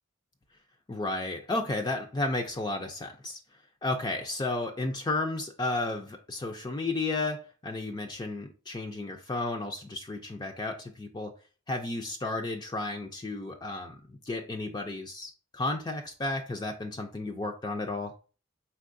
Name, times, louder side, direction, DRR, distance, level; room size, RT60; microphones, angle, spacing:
voice 1, 0.9-3.4 3.8-11.3 11.7-18.1, left 2 dB, 20° left, 0.4 m, -33 dB
4.5 x 4.0 x 2.5 m
head